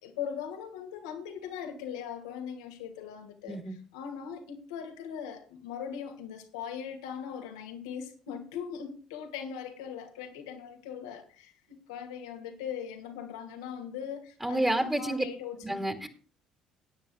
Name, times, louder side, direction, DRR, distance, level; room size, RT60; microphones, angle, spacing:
voice 1, 0.0-3.6 3.9-15.9, left 8 dB, 75° left, 4 dB, 2.1 m, -40 dB
voice 2, 14.4-15.2 15.6-16.1, right 1 dB, 10° right, 3 dB, 2.3 m, -29 dB
19.5 x 9.9 x 2.3 m, 0.41 s
hypercardioid pair, 55°, 3 cm